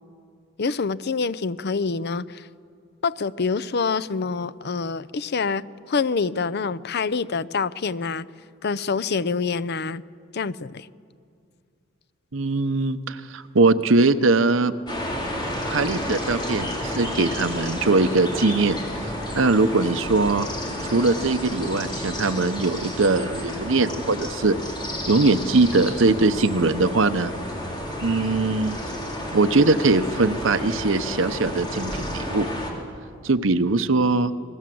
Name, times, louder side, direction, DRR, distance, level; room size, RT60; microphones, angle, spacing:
voice 1, 0.6-2.5 3.0-8.3 8.6-10.0 10.3-10.9, left 4 dB, 55° left, 16 dB, 0.6 m, -26 dB
voice 2, 12.3-14.7 15.7-18.8 19.3-20.5 20.9-24.6 25.1-27.3 28.0-28.8 29.3-32.5 33.2-34.3, right 3 dB, 75° right, 10 dB, 1.0 m, -21 dB
sound 1, 14.9-32.7, left 1 dB, 25° left, 3.8 m, -31 dB
29.0 x 20.5 x 7.8 m, 2.3 s
head